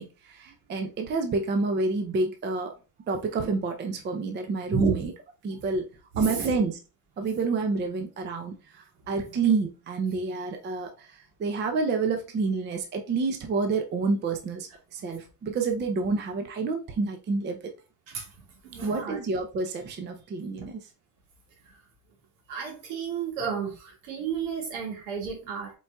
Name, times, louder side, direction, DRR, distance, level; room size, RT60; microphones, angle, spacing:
voice 1, 0.0-2.7 3.1-5.1 5.4-5.9 6.2-6.8 7.2-11.1 11.4-17.6 18.8-20.8, right 4 dB, 20° right, 5 dB, 0.6 m, -28 dB
voice 2, 6.1-6.5 9.3-9.4 18.1-18.2 18.7-19.2 22.5-25.7, right 7 dB, 65° right, 1 dB, 2.0 m, -32 dB
4.6 x 4.0 x 2.3 m, 0.32 s
supercardioid pair, 115°, 50 cm